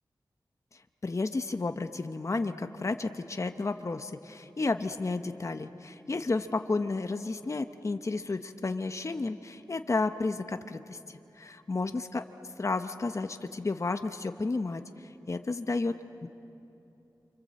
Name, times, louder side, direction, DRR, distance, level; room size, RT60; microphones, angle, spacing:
voice 1, 1.0-12.2 12.6-16.3, left 3 dB, 40° left, 8 dB, 0.9 m, -32 dB
29.0 x 25.5 x 7.6 m, 2.8 s
wide cardioid pair, 80°, 8 cm